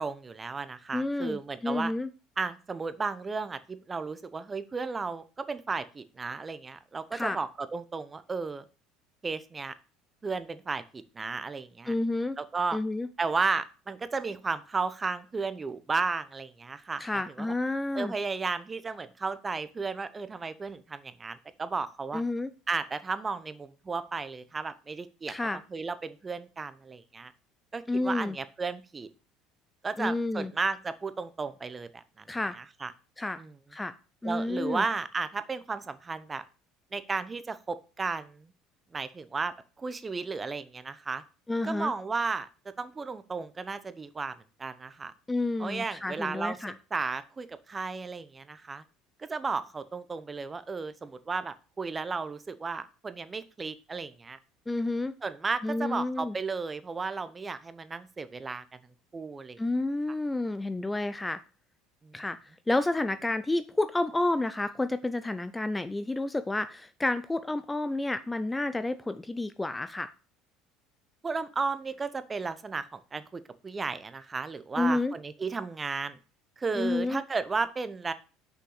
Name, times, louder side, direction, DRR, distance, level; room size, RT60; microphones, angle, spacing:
voice 1, 0.0-1.9 2.4-8.6 9.2-9.7 10.2-11.9 12.4-12.8 13.2-17.0 17.4-17.5 18.0-22.2 22.7-25.3 25.7-27.3 27.7-29.1 29.8-32.0 32.6-32.9 33.4-33.5 34.2-36.4 36.9-38.5 38.9-41.2 41.6-42.5 42.8-44.3 44.6-45.1 45.6-46.6 46.9-48.8 49.2-54.4 55.2-58.6 59.1-59.6 62.0-62.2 71.2-76.2 76.6-78.1, right 4 dB, 25° right, 13 dB, 0.7 m, -34 dB
voice 2, 0.9-2.1 7.1-7.4 11.9-12.4 12.7-13.1 17.0-18.1 22.1-22.5 25.3-25.6 27.9-28.4 30.0-30.5 32.3-32.6 33.2-33.4 33.7-33.9 34.2-34.8 41.5-41.9 45.3-46.7 54.7-55.1 55.6-56.4 59.6-61.4 62.1-62.4 62.7-70.1 74.8-75.1 76.7-77.2, left 2 dB, 10° left, 12 dB, 0.4 m, -30 dB
6.3 x 5.5 x 4.9 m, 0.35 s
supercardioid pair, 105°, 0 cm